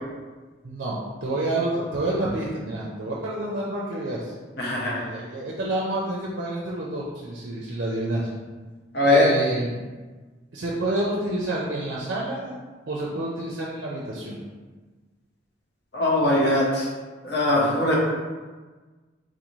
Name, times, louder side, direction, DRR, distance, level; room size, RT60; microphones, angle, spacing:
voice 1, 0.6-4.3 4.9-8.3 9.1-9.9 10.5-12.5 12.9-14.4, right 1 dB, 60° right, -5 dB, 0.5 m, -28 dB
voice 2, 4.6-5.0 8.9-9.3 15.9-16.9 17.2-18.0, left 1 dB, 55° left, -4 dB, 0.8 m, -21 dB
3.8 x 2.6 x 3.0 m, 1.3 s
head